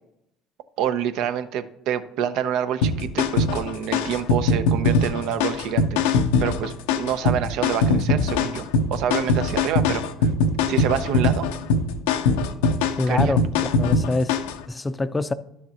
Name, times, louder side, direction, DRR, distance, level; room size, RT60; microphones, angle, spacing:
voice 1, 0.8-6.0 6.4-8.6 8.9-10.3 10.7-11.5 13.1-13.4, right 9 dB, 70° right, 0.6 m, -27 dB
sound 1, 2.8-14.6, left 3 dB, 80° left, 0.6 m, -22 dB
voice 2, 12.9-14.4 14.7-15.3, left 2 dB, 20° left, 0.5 m, -25 dB
12.0 x 6.5 x 2.9 m
hypercardioid pair, 70°, 0 cm